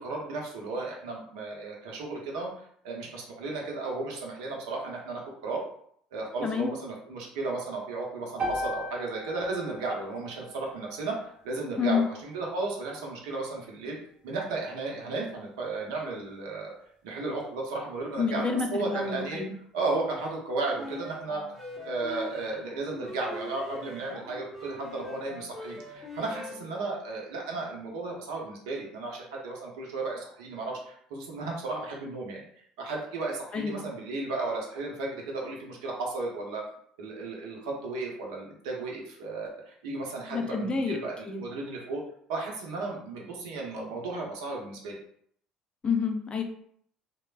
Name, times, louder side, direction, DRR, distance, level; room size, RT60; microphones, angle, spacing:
voice 1, 0.0-2.5 2.8-5.6 6.1-14.0 14.2-16.7 17.0-19.4 19.7-21.4 21.8-32.4 32.8-36.6 37.0-42.0 42.3-45.0, right 3 dB, 75° right, -1 dB, 0.7 m, -34 dB
voice 2, 6.4-6.7 11.8-12.0 18.2-19.5 33.5-33.9 40.3-41.0 41.2-41.4 45.8-46.4, left 5 dB, 30° left, 4 dB, 0.5 m, -28 dB
sound 1, 8.4-12.6, equal, 45° right, 1.3 m, -38 dB
sound 2, 20.7-26.8, left 1 dB, ahead, 1.0 m, -42 dB
3.1 x 2.1 x 2.4 m, 0.65 s
hypercardioid pair, 65°, 3 cm